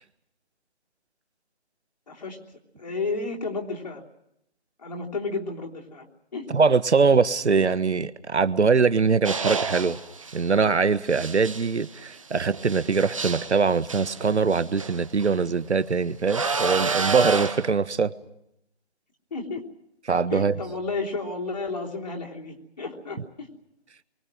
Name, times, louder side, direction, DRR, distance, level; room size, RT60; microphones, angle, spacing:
voice 1, 2.1-2.4 2.8-4.1 4.8-6.5 19.3-19.6 20.3-23.5, left 3 dB, 40° left, 0 dB, 3.4 m, -32 dB
voice 2, 6.5-10.0 10.3-18.1 20.1-20.5, right 5 dB, 90° right, 14 dB, 1.4 m, -22 dB
sound 1, 9.2-10.4 11.1-15.4 16.3-17.7, right 4 dB, 30° right, 1.3 m, -29 dB
26.5 x 23.5 x 6.2 m, 0.80 s
hypercardioid pair, 175°, 33 cm